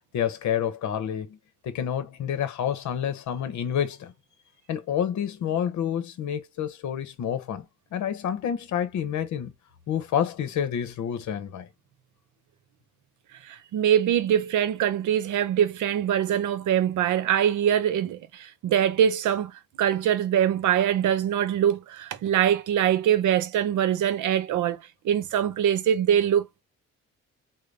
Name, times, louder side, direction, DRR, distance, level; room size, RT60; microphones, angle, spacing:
voice 1, 0.1-1.4 1.6-4.1 4.7-7.6 7.9-9.5 9.9-11.7, left 9 dB, 70° left, 0.8 m, -28 dB
voice 2, 13.4-19.5 19.8-26.5, right 10 dB, 80° right, 0.8 m, -23 dB
3.8 x 2.1 x 3.3 m
cardioid pair, 90°, 30 cm